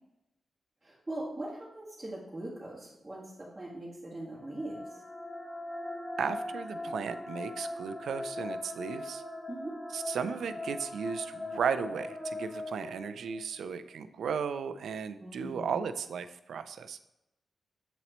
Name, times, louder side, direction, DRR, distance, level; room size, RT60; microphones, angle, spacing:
voice 1, 0.8-5.0 9.5-9.8 15.2-15.7, right 1 dB, 20° right, -8 dB, 1.6 m, -41 dB
sound 1, 4.3-13.6, left 1 dB, 15° left, 1.0 m, -40 dB
voice 2, 6.2-9.2 9.9-17.0, right 6 dB, 90° right, 11 dB, 0.4 m, -35 dB
7.9 x 4.1 x 3.0 m, 0.90 s
cardioid pair, 65°, 0 cm